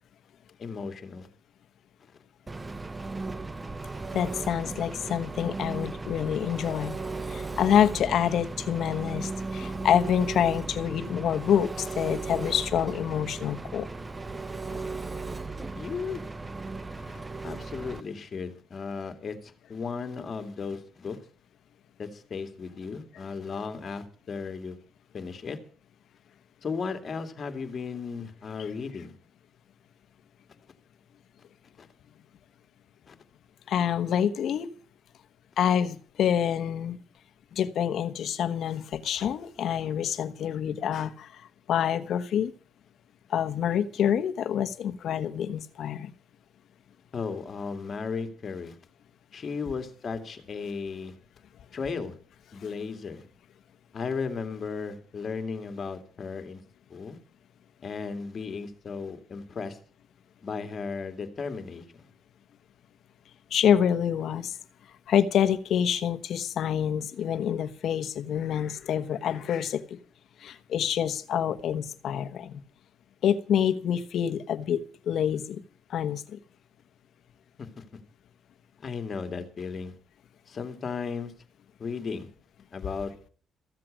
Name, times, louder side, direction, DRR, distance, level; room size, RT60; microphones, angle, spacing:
voice 1, 0.6-1.3 14.7-14.8 15.7-16.2 17.0-21.2 22.0-24.8 25.1-25.6 26.6-29.1 31.8-31.9 33.1-33.2 47.1-48.8 49.3-51.2 51.7-52.2 52.5-53.2 53.9-56.6 56.9-57.2 57.8-59.8 60.4-62.1 77.6-77.8 78.8-79.9 80.5-81.3 81.8-82.3 82.7-83.1, left 5 dB, 45° left, 2.5 m, -35 dB
Engine, 2.5-18.0, right 3 dB, 20° right, 0.8 m, -36 dB
voice 2, 4.1-6.9 7.3-13.9 33.7-34.7 35.6-37.0 37.5-41.4 41.7-42.5 43.3-46.1 63.5-64.5 65.1-70.0 70.4-72.6 73.2-75.6 75.9-76.4, left 9 dB, 70° left, 1.2 m, -27 dB
15.0 x 7.6 x 9.0 m
cardioid pair, 90°, 0 cm